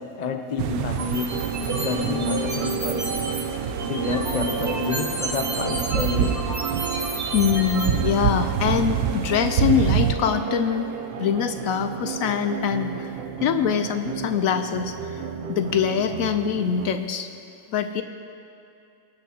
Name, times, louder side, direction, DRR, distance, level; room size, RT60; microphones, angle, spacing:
voice 1, 0.0-1.4 1.8-3.1 3.8-6.5, left 3 dB, 40° left, 5 dB, 0.6 m, -29 dB
sound 1, 0.6-10.1, right 8 dB, 85° right, 1.1 m, -27 dB
sound 2, 0.9-3.4 3.8-7.9, right 2 dB, 10° right, 1.5 m, -32 dB
sound 3, 1.3-17.0, right 6 dB, 55° right, 0.7 m, -32 dB
voice 2, 7.3-10.9 11.2-13.1 13.4-15.2 15.5-17.3 17.7-18.0, left 8 dB, 70° left, 8 dB, 1.0 m, -24 dB
23.0 x 12.5 x 2.9 m, 2.5 s
omnidirectional pair, 1.5 m